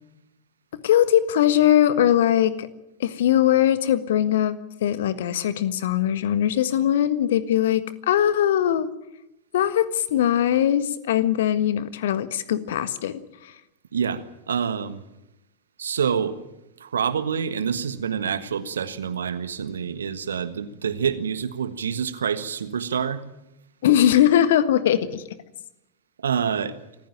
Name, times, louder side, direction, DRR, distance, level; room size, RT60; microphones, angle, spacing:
voice 1, 0.7-2.7 3.0-8.9 9.5-13.2 23.8-25.2, left 11 dB, 60° left, 14 dB, 1.5 m, -21 dB
voice 2, 13.9-15.0 15.8-16.4 16.8-23.2 26.2-26.8, right 7 dB, 65° right, 13 dB, 1.5 m, -27 dB
26.0 x 15.0 x 8.9 m, 0.89 s
figure-of-eight pair, 90°, 0 cm